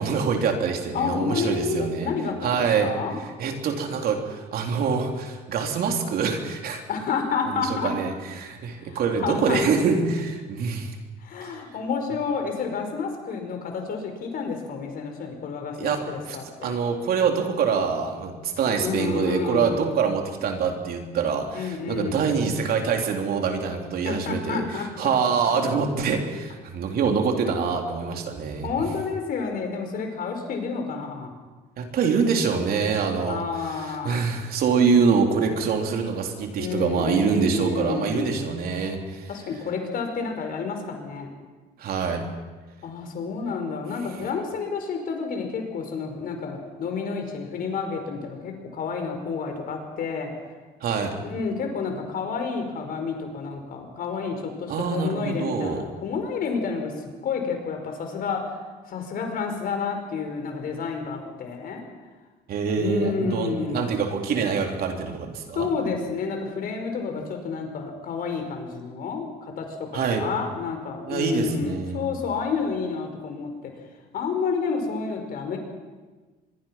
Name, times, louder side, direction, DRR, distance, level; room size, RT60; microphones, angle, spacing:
voice 1, 0.0-2.1 2.4-2.9 3.4-6.8 7.5-10.9 11.4-11.5 15.8-28.7 31.8-39.3 41.8-42.3 50.8-51.2 54.7-55.8 62.5-65.7 69.9-70.3 71.0-72.0, right 5 dB, 65° right, 3 dB, 3.6 m, -25 dB
voice 2, 0.9-3.2 6.9-7.9 8.8-9.6 11.2-16.8 18.8-19.8 21.5-22.3 24.0-25.1 28.6-31.3 33.3-34.2 36.5-38.5 39.3-41.3 42.8-50.3 51.2-56.9 57.2-58.4 58.9-61.8 62.8-63.9 65.5-73.7 74.1-75.6, left 5 dB, 60° left, 4 dB, 5.2 m, -30 dB
25.0 x 22.5 x 5.9 m, 1.3 s
cardioid pair, 110°, 17 cm